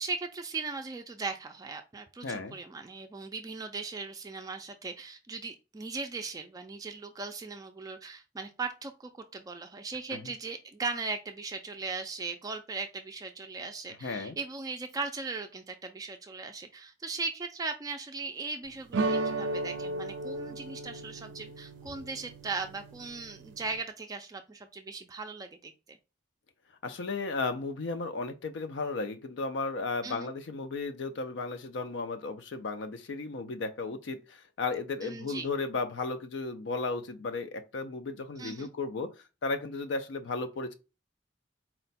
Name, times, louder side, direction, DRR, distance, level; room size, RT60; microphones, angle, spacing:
voice 1, 0.0-26.0 30.0-30.3 35.0-35.5 38.4-38.7, right 4 dB, 20° right, 0.3 m, -38 dB
voice 2, 2.2-2.6 10.1-10.2 14.0-14.4 26.8-39.1 39.4-40.7, left 3 dB, 80° left, 0.4 m, -34 dB
sound 1, 18.9-23.8, right 2 dB, 85° right, 0.4 m, -35 dB
4.3 x 2.2 x 4.0 m
head